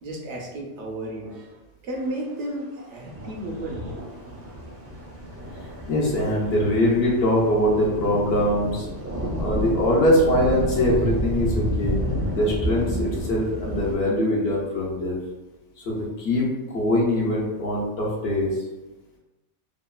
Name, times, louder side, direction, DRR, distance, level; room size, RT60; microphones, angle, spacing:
voice 1, 0.0-1.6 1.8-3.8, right 1 dB, 75° right, 0 dB, 0.9 m, -33 dB
sound 1, 3.1-13.9, equal, 20° right, 0.4 m, -30 dB
voice 2, 5.9-8.9 9.4-11.9 12.3-15.2 15.9-18.5, left 1 dB, 65° left, -4 dB, 0.9 m, -22 dB
2.9 x 2.2 x 2.3 m, 1.1 s
omnidirectional pair, 1.2 m